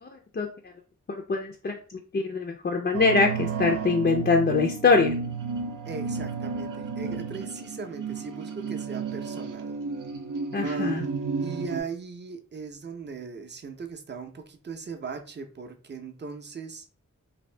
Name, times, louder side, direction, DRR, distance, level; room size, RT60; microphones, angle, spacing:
voice 1, 0.0-0.5 1.1-5.1 10.5-11.0, left 4 dB, 35° left, 2 dB, 0.4 m, -24 dB
sound 1, 2.9-11.8, right 5 dB, 85° right, 0.5 m, -32 dB
voice 2, 5.9-9.8 10.6-11.1 11.4-16.8, right 5 dB, 35° right, 6 dB, 0.5 m, -39 dB
2.7 x 2.6 x 3.2 m, 0.37 s
wide cardioid pair, 85°, 31 cm